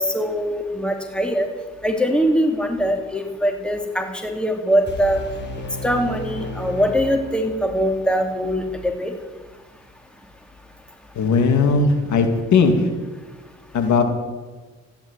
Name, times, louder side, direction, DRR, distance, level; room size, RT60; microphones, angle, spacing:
voice 1, 0.0-1.5 1.8-5.2 5.8-9.1, equal, 5° left, 4 dB, 2.7 m, -22 dB
sound 1, 4.9-7.8, left 2 dB, 35° left, 5.5 m, -33 dB
voice 2, 11.2-12.7 13.7-14.0, left 4 dB, 70° left, 6 dB, 2.6 m, -17 dB
14.5 x 10.5 x 9.8 m, 1.3 s
cardioid pair, 90°, 30 cm